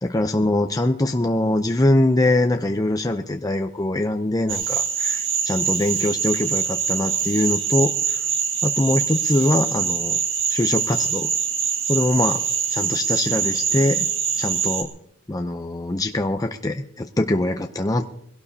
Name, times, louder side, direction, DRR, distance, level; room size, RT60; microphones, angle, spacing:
voice 1, 0.0-8.2 8.6-10.2 10.5-11.3 11.9-12.4 12.7-14.1 14.4-14.9 15.3-18.0, left 1 dB, 15° left, 5 dB, 0.5 m, -23 dB
sound 1, 4.5-14.8, right 7 dB, 55° right, 1.9 m, -24 dB
22.5 x 17.0 x 2.8 m, 0.71 s
head